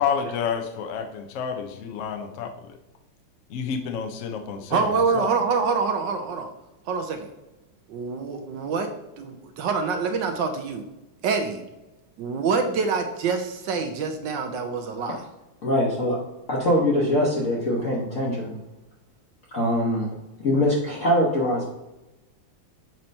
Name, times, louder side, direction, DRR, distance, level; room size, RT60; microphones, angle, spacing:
voice 1, 0.0-2.5 3.5-5.3, left 7 dB, 75° left, 5 dB, 0.7 m, -29 dB
voice 2, 4.7-6.5 6.9-7.3 7.9-8.9 9.2-10.8 11.2-11.6 12.2-15.2, right 5 dB, 70° right, 6 dB, 1.2 m, -26 dB
voice 3, 15.6-16.2 16.5-18.6 19.5-20.1 20.4-21.7, left 1 dB, 45° left, -5 dB, 1.2 m, -23 dB
7.5 x 2.9 x 5.2 m, 1.0 s
omnidirectional pair, 2.2 m